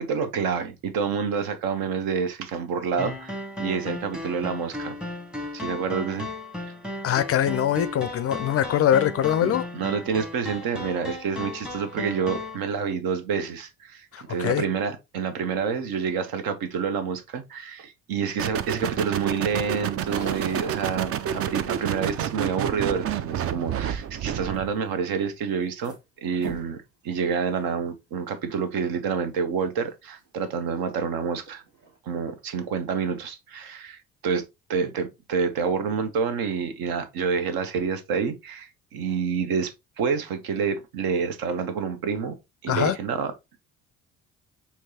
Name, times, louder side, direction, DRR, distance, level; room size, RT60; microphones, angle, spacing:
voice 1, 0.0-5.0 5.5-6.3 9.4-25.9 26.2-31.6 32.1-34.4 34.7-42.4 42.6-43.6, right 6 dB, 60° right, 0.9 m, -28 dB
sound 1, 3.0-12.6, left 2 dB, ahead, 0.9 m, -35 dB
voice 2, 7.0-9.7 14.1-14.6 42.7-43.0, left 10 dB, 40° left, 0.4 m, -23 dB
sound 2, 18.4-24.7, right 9 dB, 40° right, 0.4 m, -29 dB
sound 3, 20.1-23.9 24.4-24.9 25.3-26.0 26.4-26.8 27.4-27.5 28.2-28.3 30.8-30.9 31.4-32.0, right 5 dB, 80° right, 1.5 m, -40 dB
4.5 x 2.8 x 2.7 m
hypercardioid pair, 50°, 39 cm